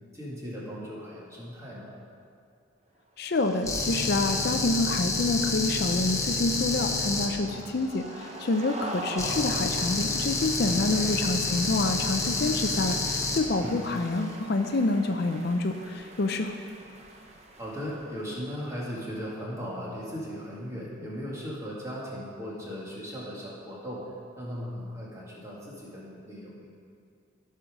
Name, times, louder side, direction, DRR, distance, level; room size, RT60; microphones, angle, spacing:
voice 1, 0.1-2.0 10.6-11.1 13.6-13.8 17.6-24.1 24.4-26.7, equal, 15° right, -6 dB, 2.1 m, -37 dB
voice 2, 3.2-16.6, left 2 dB, 55° left, 6 dB, 0.5 m, -27 dB
sound 1, 3.2-18.9, right 1 dB, 35° right, 0.8 m, -44 dB
sound 2, 3.6-7.3 9.2-13.4, left 3 dB, 15° left, 0.9 m, -29 dB
14.5 x 5.6 x 5.0 m, 2.2 s
head